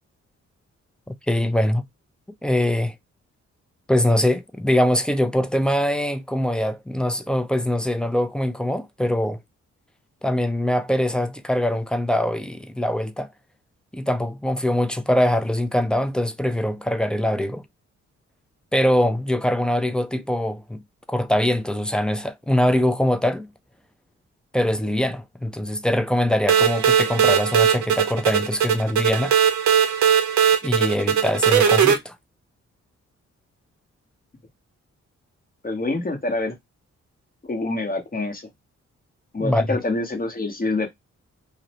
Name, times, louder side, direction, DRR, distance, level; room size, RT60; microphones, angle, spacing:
voice 1, 1.1-1.8 2.4-2.9 3.9-9.4 10.2-13.3 13.9-17.6 18.7-20.8 21.1-23.5 24.5-29.3 30.6-32.1 39.4-39.8, left 1 dB, 5° left, 0.3 m, -23 dB
sound 1, 26.5-32.0, right 8 dB, 75° right, 0.6 m, -19 dB
voice 2, 35.6-36.5 37.5-38.4 39.3-40.9, left 2 dB, 30° left, 0.9 m, -26 dB
2.4 x 2.0 x 2.9 m
cardioid pair, 65°, 29 cm